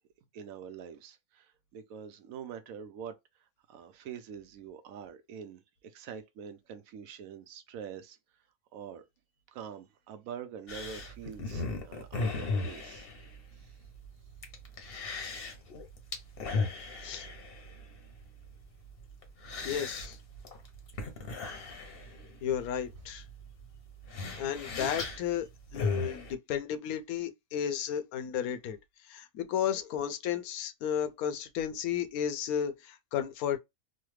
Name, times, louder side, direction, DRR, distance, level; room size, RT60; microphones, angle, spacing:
voice 1, 0.3-3.1 3.7-8.2 8.7-9.1 9.5-13.1 13.6-13.7, right 7 dB, 70° right, 0.9 m, -45 dB
sound 1, 10.7-26.3, left 3 dB, 50° left, 0.8 m, -38 dB
voice 2, 19.6-20.2 22.4-23.2 24.4-25.5 25.7-28.8 29.1-33.6, left 9 dB, 75° left, 1.0 m, -33 dB
3.2 x 2.1 x 3.1 m
omnidirectional pair, 1.6 m